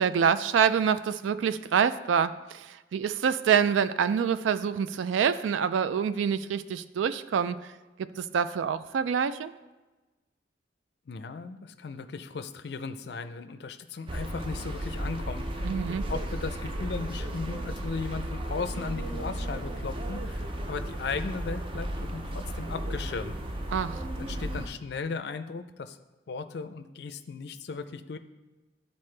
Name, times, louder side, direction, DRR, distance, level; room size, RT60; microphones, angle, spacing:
voice 1, 0.0-7.6 8.0-9.5 15.6-16.0 23.7-24.0, right 7 dB, 90° right, 13 dB, 0.3 m, -26 dB
voice 2, 11.1-23.3 24.2-26.0 26.3-28.2, left 4 dB, 60° left, 10 dB, 0.4 m, -37 dB
sound 1, 14.1-24.7, right 1 dB, 30° right, 0.5 m, -34 dB
11.5 x 4.1 x 3.2 m, 1.2 s
head